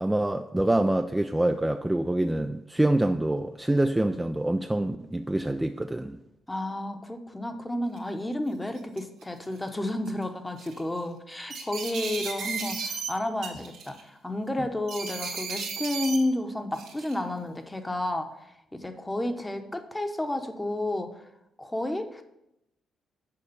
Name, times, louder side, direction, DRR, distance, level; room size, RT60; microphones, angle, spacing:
voice 1, 0.0-6.2, right 1 dB, 10° right, 0.4 m, -26 dB
voice 2, 6.5-18.3 18.7-21.2 21.6-22.2, left 1 dB, 10° left, 0.9 m, -31 dB
sound 1, 8.0-8.1 8.7-9.2 10.1-10.2 10.6-10.8 11.5-13.1 13.4-14.0 14.9-16.2 16.7-17.2, right 5 dB, 85° right, 1.8 m, -34 dB
6.8 x 4.8 x 6.9 m
cardioid pair, 90°, 0 cm